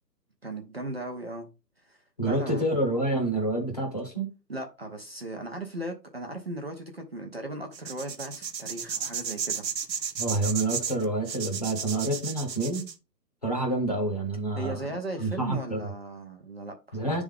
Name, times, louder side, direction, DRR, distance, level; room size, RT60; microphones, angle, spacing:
voice 1, 0.4-1.5 1.9-2.0 2.2-2.7 4.5-9.7 14.6-17.0, right 2 dB, 40° right, 0.7 m, -37 dB
voice 2, 2.2-4.3 10.2-12.8 13.4-14.8 15.2-15.8 16.9-17.2, right 2 dB, 25° left, 1.0 m, -28 dB
sound 1, 7.7-12.9, right 7 dB, 80° right, 1.0 m, -33 dB
9.7 x 3.6 x 3.5 m
hypercardioid pair, 180°, 50 cm